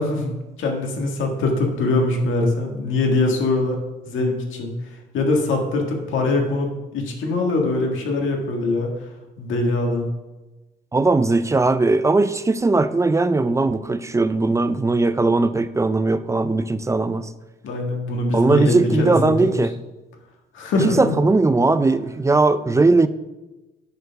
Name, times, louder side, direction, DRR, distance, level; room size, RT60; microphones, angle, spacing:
voice 1, 0.0-3.8 4.1-4.7 5.1-8.9 9.4-10.1 17.6-19.7 20.5-21.1, left 2 dB, 80° left, 2 dB, 1.8 m, -22 dB
voice 2, 10.9-17.3 18.3-19.7 20.8-23.1, right 3 dB, 15° right, 13 dB, 0.4 m, -19 dB
9.3 x 4.5 x 5.7 m, 1.1 s
cardioid pair, 90°, 20 cm